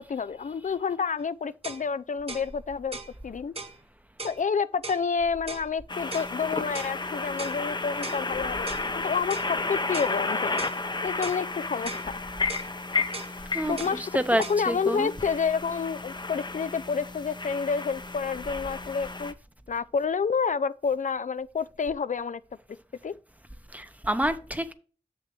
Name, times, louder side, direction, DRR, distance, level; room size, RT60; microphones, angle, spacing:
voice 1, 0.1-3.0 3.2-3.5 4.2-8.7 8.9-10.7 11.0-12.0 13.7-14.1 14.5-19.3 19.7-22.4 23.0-23.1, left 5 dB, 70° left, 0.4 m, -29 dB
sound 1, 1.2-1.3 1.6-1.8 2.3-2.5 2.9-3.1 3.5-3.8 4.2-4.4 4.8-5.0 5.5-5.7 6.1-6.3 6.7-7.0 7.4-7.6 8.0-8.2 8.7-8.9 9.3-9.5 9.9-10.2 10.6-10.8 11.2-11.4 11.8-12.1 12.5-12.7 13.1-13.3 13.8-14.0 14.4-14.6, right 3 dB, 50° right, 1.1 m, -38 dB
sound 2, 5.9-19.3, left 3 dB, 35° left, 0.7 m, -32 dB
voice 2, 13.5-15.1 23.7-24.7, right 1 dB, 10° right, 0.8 m, -28 dB
7.4 x 6.8 x 3.2 m
wide cardioid pair, 55°, 13 cm